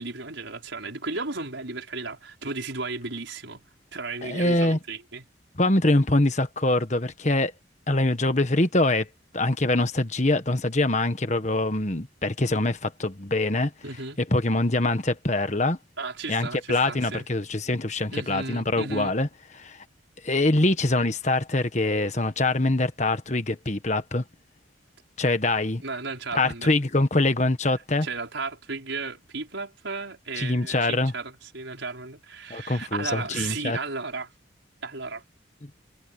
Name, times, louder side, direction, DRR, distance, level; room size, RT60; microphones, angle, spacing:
voice 1, 0.0-3.6 3.9-5.2 13.8-14.2 16.0-17.3 18.1-19.1 25.8-26.7 28.0-34.3 34.8-35.2, right 3 dB, 75° right, 5.1 m, -34 dB
voice 2, 4.2-4.8 5.6-7.5 7.9-9.1 9.3-13.7 14.3-15.8 16.3-19.3 19.6-19.8 20.2-24.2 25.2-25.8 26.3-28.1 30.4-31.1 32.5-33.8 35.6-35.7, left 2 dB, 35° left, 1.5 m, -24 dB
head